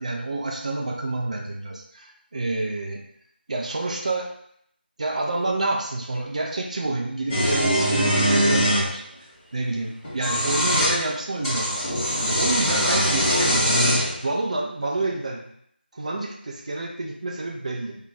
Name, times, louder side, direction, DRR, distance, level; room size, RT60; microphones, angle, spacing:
voice 1, 0.0-3.0 3.5-4.3 5.0-9.0 9.5-11.9 12.4-15.4 15.9-18.0, right 2 dB, 40° right, 0 dB, 0.4 m, -28 dB
sound 1, 7.3-8.9 10.0-11.0 11.4-14.1, equal, 5° left, 0.8 m, -22 dB
2.3 x 2.1 x 3.8 m, 0.70 s
figure-of-eight pair, 170°, 6 cm